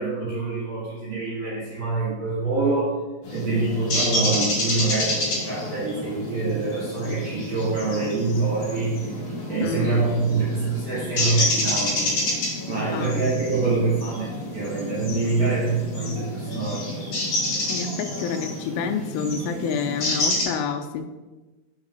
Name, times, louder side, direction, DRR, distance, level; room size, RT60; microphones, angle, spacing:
voice 1, 0.0-2.9 3.3-9.2 9.5-12.1 12.7-17.0, right 3 dB, 45° right, -9 dB, 2.4 m, -25 dB
sound 1, 3.2-20.4, left 1 dB, 45° left, 2.4 m, -29 dB
voice 2, 9.6-10.0 12.9-13.2 17.7-21.0, left 6 dB, 85° left, 6 dB, 3.0 m, -28 dB
7.2 x 5.4 x 3.8 m, 1.1 s
omnidirectional pair, 5.6 m